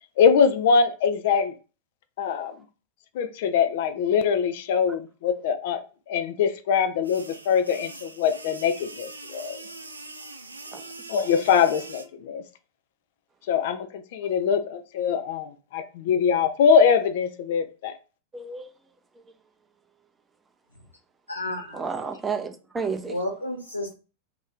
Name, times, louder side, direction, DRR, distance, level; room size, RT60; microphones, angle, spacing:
voice 1, 0.2-1.6 2.2-2.6 3.1-9.6 11.1-12.4 13.5-18.0, left 6 dB, 55° left, 0.4 m, -23 dB
sound 1, 7.0-12.0, right 2 dB, 80° right, 0.4 m, -42 dB
voice 2, 18.3-18.7 19.2-19.3 21.7-23.2, right 5 dB, 15° right, 0.5 m, -32 dB
voice 3, 21.3-21.9 23.1-23.9, left 1 dB, 85° left, 1.3 m, -31 dB
2.8 x 2.6 x 3.7 m
figure-of-eight pair, 90°, 0 cm